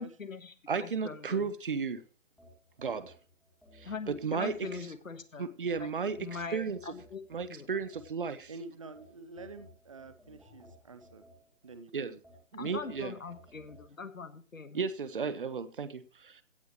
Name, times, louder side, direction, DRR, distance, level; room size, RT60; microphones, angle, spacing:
voice 1, 0.0-1.5 3.8-5.5 5.8-7.2 7.5-7.7 12.6-14.8, left 4 dB, 85° left, 1.5 m, -42 dB
voice 2, 0.7-2.0 2.8-3.1 3.7-4.7 5.4-6.8 7.3-8.5 11.9-12.1 12.5-13.1 14.7-16.4, right 5 dB, 40° right, 1.1 m, -34 dB
sound 1, 2.4-5.2 5.7-8.4 9.0-11.7 12.2-13.9, left 1 dB, ahead, 2.1 m, -58 dB
voice 3, 8.5-11.2 11.6-12.2, right 3 dB, 25° right, 0.8 m, -48 dB
17.0 x 8.2 x 3.1 m
figure-of-eight pair, 160°, 39 cm